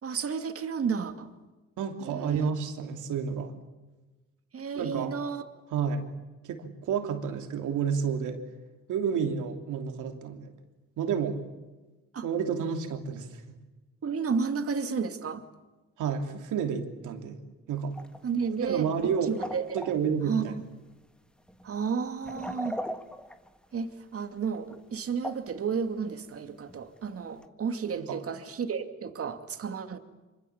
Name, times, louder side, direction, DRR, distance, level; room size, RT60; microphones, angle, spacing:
voice 1, 0.0-1.3 2.0-2.5 4.5-5.4 12.1-12.3 14.0-15.4 18.2-19.7 20.2-20.6 21.6-22.8 23.7-30.0, right 6 dB, 50° right, 8 dB, 2.5 m, -32 dB
voice 2, 1.8-3.5 4.8-5.1 5.7-6.1 6.4-8.4 8.9-10.5 11.0-11.4 12.2-13.4 16.0-17.4 17.7-17.9 18.6-19.3 19.7-20.6 28.0-28.2, right 7 dB, 85° right, 5 dB, 3.0 m, -30 dB
sound 1, 17.9-18.2 18.5-19.1 19.3-20.0 21.0-21.1 21.5-21.7 22.2-23.8 24.7-25.0 25.2-25.6 26.2-26.3 26.7-26.8 27.4-27.5, equal, 5° left, 1.6 m, -38 dB
25.5 x 25.0 x 7.3 m, 1.2 s
cardioid pair, 90°, 30 cm